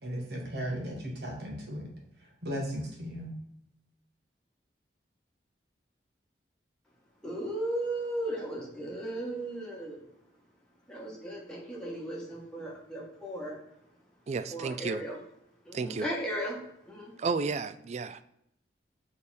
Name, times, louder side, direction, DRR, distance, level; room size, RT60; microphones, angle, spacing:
voice 1, 0.0-1.9 2.2-3.4, equal, 65° right, 0 dB, 1.5 m, -36 dB
voice 2, 7.2-10.0 10.9-13.6 14.5-15.2 15.6-17.1, right 1 dB, 5° left, -4 dB, 1.4 m, -36 dB
voice 3, 14.3-15.0 15.7-16.1 17.2-18.2, right 4 dB, 40° right, 12 dB, 0.3 m, -32 dB
6.7 x 3.5 x 4.3 m, 0.76 s
head